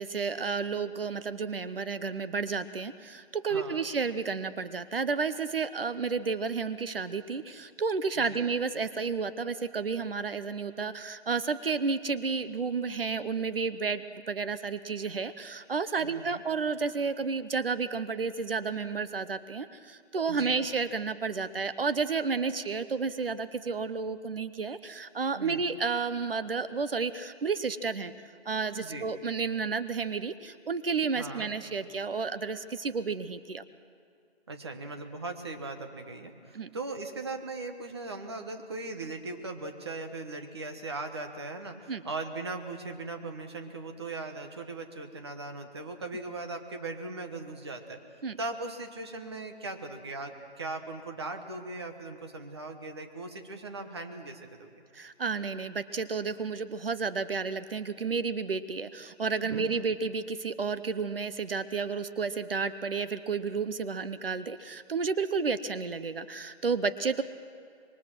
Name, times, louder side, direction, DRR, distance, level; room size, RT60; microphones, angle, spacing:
voice 1, 0.0-28.1 28.5-33.6 36.5-36.7 41.9-42.0 48.2-48.4 54.9-67.2, right 5 dB, 55° right, 13 dB, 0.9 m, -31 dB
voice 2, 3.5-3.9 8.2-8.5 16.0-16.4 20.3-20.6 25.3-25.6 28.7-29.1 31.1-31.5 34.5-48.0 48.4-54.8 59.4-59.9, right 3 dB, 25° right, 4 dB, 1.2 m, -39 dB
26.0 x 23.0 x 6.1 m, 2.3 s
hypercardioid pair, 170°, 33 cm